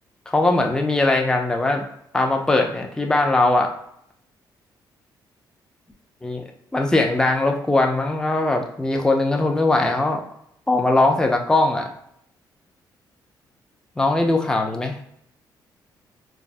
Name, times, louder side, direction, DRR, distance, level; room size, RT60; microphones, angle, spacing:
voice 1, 0.3-1.8 2.1-3.7 6.2-6.4 6.7-10.2 10.7-11.9 14.0-15.0, left 2 dB, 10° left, 2 dB, 0.4 m, -20 dB
3.3 x 2.0 x 2.5 m, 0.72 s
cardioid pair, 100°, 8 cm